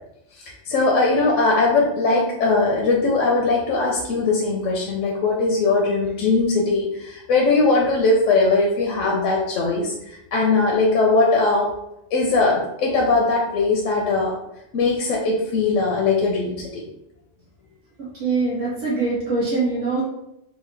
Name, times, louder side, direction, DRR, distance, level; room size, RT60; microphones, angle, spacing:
voice 1, 0.3-11.7 12.1-14.4 14.7-16.8, left 3 dB, 75° left, -1 dB, 0.9 m, -20 dB
voice 2, 18.0-20.0, right 3 dB, 65° right, -8 dB, 1.3 m, -23 dB
3.8 x 2.1 x 3.1 m, 0.82 s
omnidirectional pair, 1.4 m